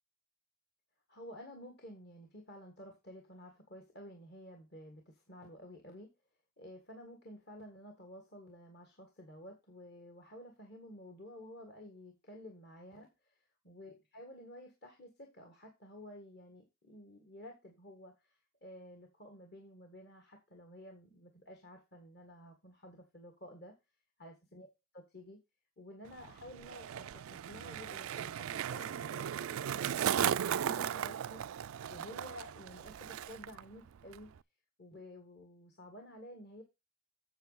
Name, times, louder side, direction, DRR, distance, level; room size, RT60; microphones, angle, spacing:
voice 1, 1.1-6.1 6.6-23.7 24.2-24.7 24.9-25.4 25.8-31.4 31.9-34.3 34.8-36.6, left 1 dB, 50° left, 3 dB, 1.6 m, -52 dB
Skateboard, 26.1-33.6 33.9-34.4, right 9 dB, 90° right, 0.4 m, -36 dB
8.1 x 7.3 x 4.0 m, 0.24 s
head